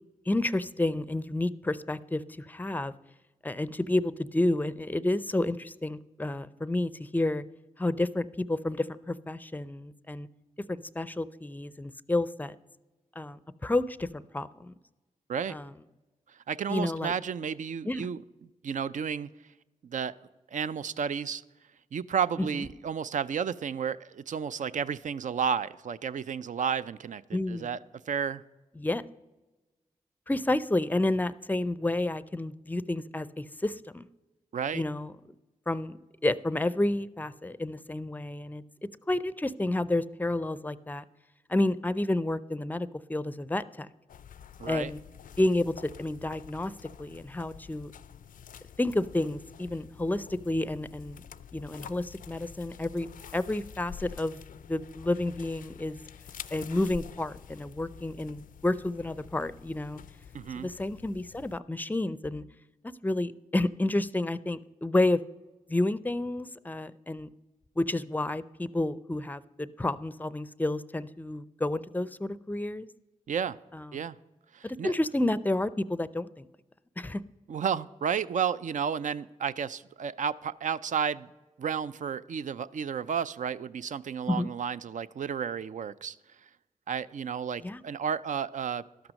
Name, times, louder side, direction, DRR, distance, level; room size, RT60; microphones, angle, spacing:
voice 1, 0.3-2.9 3.4-7.4 7.8-10.3 10.7-12.6 13.2-14.7 15.5-15.7 16.7-17.1 17.9-18.1 22.5-22.7 27.3-27.7 28.8-29.0 30.3-34.1 34.7-35.1 35.7-36.0 36.2-38.6 39.1-41.0 41.5-43.9 44.7-45.0 45.4-46.7 47.0-47.9 48.8-51.2 51.5-53.1 53.3-56.0 56.5-60.0 60.6-62.4 63.0-65.2 65.7-67.3 67.8-72.9 73.7-73.9 74.6-76.5 77.0-77.2 84.3-84.5 87.6-87.8, left 1 dB, 10° left, 17 dB, 0.5 m, -30 dB
voice 2, 16.5-18.2 18.6-19.3 19.8-20.2 20.5-21.4 21.9-27.8 28.1-28.4 34.5-34.8 44.6-44.9 60.3-60.7 73.3-73.6 73.9-74.2 74.5-74.9 77.5-81.3 81.6-86.2 86.9-88.8, right 7 dB, 60° right, 15 dB, 0.4 m, -32 dB
sound 1, 44.1-61.6, left 8 dB, 70° left, 0.4 m, -48 dB
12.5 x 6.0 x 6.3 m, 1.1 s
cardioid pair, 45°, 14 cm